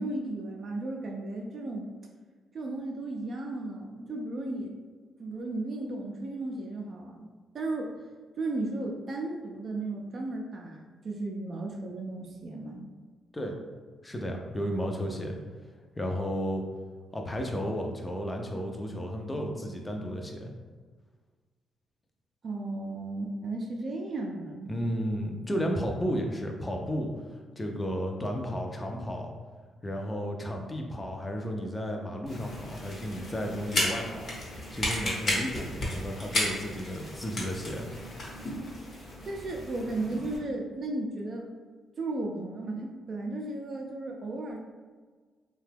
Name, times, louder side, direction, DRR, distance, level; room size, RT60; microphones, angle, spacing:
voice 1, 0.0-1.9 2.5-4.8 5.2-7.3 7.5-7.9 8.4-12.9 22.4-24.7 39.2-41.5 42.0-44.6, right 2 dB, 50° right, 0 dB, 0.4 m, -35 dB
voice 2, 14.0-15.4 16.0-16.6 17.1-20.5 24.7-27.1 27.6-29.3 29.8-37.9, equal, 20° left, 2 dB, 0.5 m, -33 dB
sound 1, 32.3-40.4, left 1 dB, 50° left, 1.0 m, -34 dB
2.8 x 2.2 x 3.3 m, 1.5 s
cardioid pair, 80°, 0 cm